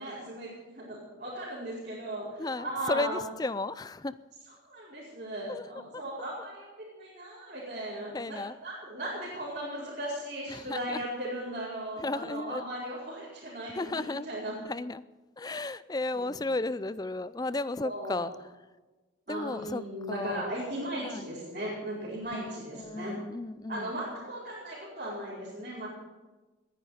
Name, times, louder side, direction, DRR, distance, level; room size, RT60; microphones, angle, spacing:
voice 1, 0.0-3.2 4.7-14.6 16.1-16.3 17.8-18.3 19.3-23.2 23.7-25.9, right 1 dB, 40° right, -8 dB, 5.0 m, -37 dB
voice 2, 2.4-4.2 5.5-5.6 5.9-6.0 8.1-8.5 10.5-11.0 12.0-12.6 13.7-14.3 14.7-15.0 15.4-18.3 19.3-19.8 20.1-20.5 21.0-21.3 22.3-23.9, left 2 dB, 20° left, 16 dB, 0.4 m, -34 dB
20.5 x 10.5 x 5.8 m, 1.2 s
head